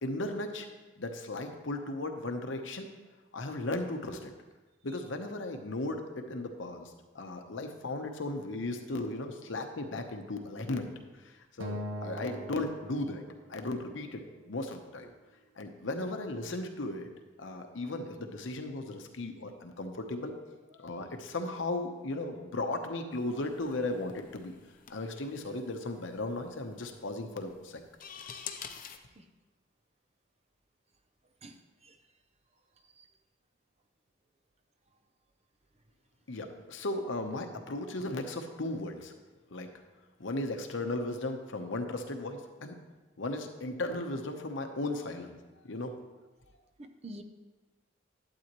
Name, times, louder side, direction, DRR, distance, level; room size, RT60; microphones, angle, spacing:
voice 1, 0.0-0.7 1.0-2.9 3.3-4.3 4.8-10.9 11.2-13.2 13.5-15.1 15.6-17.1 17.4-20.3 20.7-24.5 24.9-27.8 36.3-39.1 39.5-39.7 40.2-42.7 43.2-45.4 45.6-45.9, left 2 dB, 75° left, 5 dB, 0.9 m, -36 dB
Acoustic guitar, 11.6-14.0, equal, 90° right, 0.8 m, -42 dB
sound 1, 23.1-29.0, left 8 dB, 45° left, 0.6 m, -48 dB
voice 2, 46.8-47.2, right 1 dB, 35° right, 8 dB, 0.6 m, -46 dB
11.5 x 8.5 x 3.0 m, 1.2 s
head